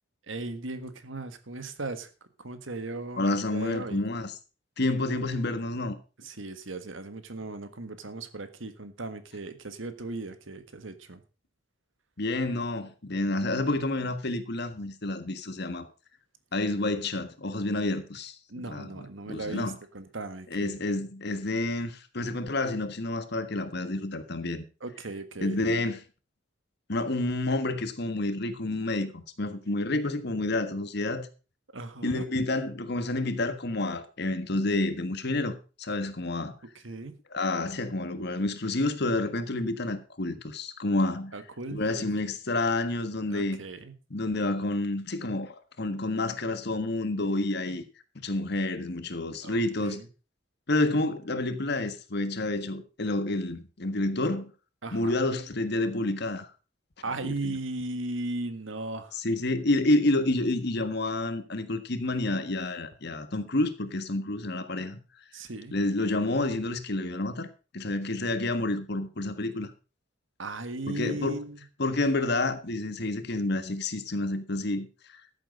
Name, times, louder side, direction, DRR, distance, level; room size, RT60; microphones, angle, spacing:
voice 1, 0.3-2.1 2.4-4.0 6.2-11.2 18.5-20.8 24.8-25.6 31.7-32.2 36.8-37.2 41.3-42.0 43.3-43.9 49.4-50.1 54.8-55.1 57.0-59.1 65.3-65.7 70.4-71.6, right 2 dB, 80° right, 1.6 m, -37 dB
voice 2, 3.2-4.3 4.8-5.9 12.2-15.9 16.5-19.7 20.5-24.6 25.4-26.0 26.9-31.3 32.0-36.5 37.3-41.3 41.7-43.6 44.1-47.8 48.1-50.0 50.7-54.5 54.9-56.5 57.2-57.5 59.2-65.0 65.7-67.5 67.7-69.7 70.9-71.4 71.8-74.9, left 2 dB, 55° left, 1.5 m, -29 dB
13.5 x 7.9 x 5.3 m
head